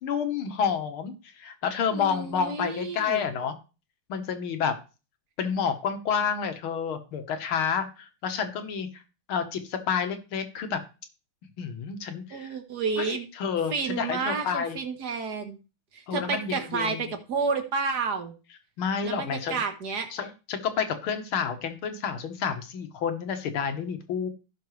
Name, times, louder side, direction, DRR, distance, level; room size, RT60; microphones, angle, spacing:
voice 1, 0.0-3.6 4.1-4.8 5.4-9.0 9.3-10.8 11.6-12.6 13.0-14.8 16.1-17.1 18.8-19.6 20.1-24.3, left 7 dB, 80° left, 7 dB, 2.1 m, -29 dB
voice 2, 1.9-3.3 12.3-13.3 13.7-15.6 15.9-18.3 19.0-20.1, right 5 dB, 55° right, 6 dB, 1.7 m, -30 dB
15.5 x 6.0 x 3.2 m, 0.32 s
omnidirectional pair, 2.3 m